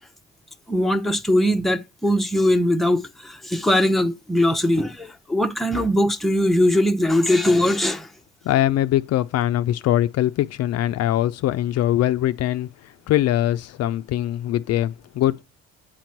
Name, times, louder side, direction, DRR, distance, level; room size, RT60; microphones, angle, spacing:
voice 1, 0.7-8.1, left 1 dB, ahead, 0.6 m, -20 dB
voice 2, 8.4-12.7 13.1-15.4, left 13 dB, 55° left, 0.4 m, -22 dB
8.6 x 3.0 x 5.8 m
supercardioid pair, 70°, 31 cm